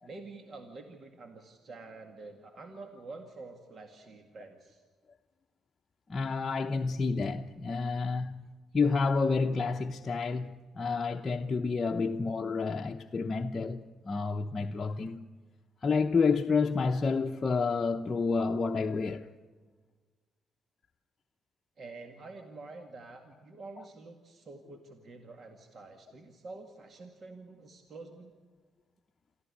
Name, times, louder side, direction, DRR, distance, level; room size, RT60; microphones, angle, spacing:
voice 1, 0.0-4.8 21.8-28.3, right 3 dB, 50° right, 2.0 m, -48 dB
voice 2, 6.1-15.3 15.8-19.3, left 4 dB, 35° left, 0.8 m, -29 dB
27.0 x 14.0 x 9.8 m
cardioid pair, 90°, 0 cm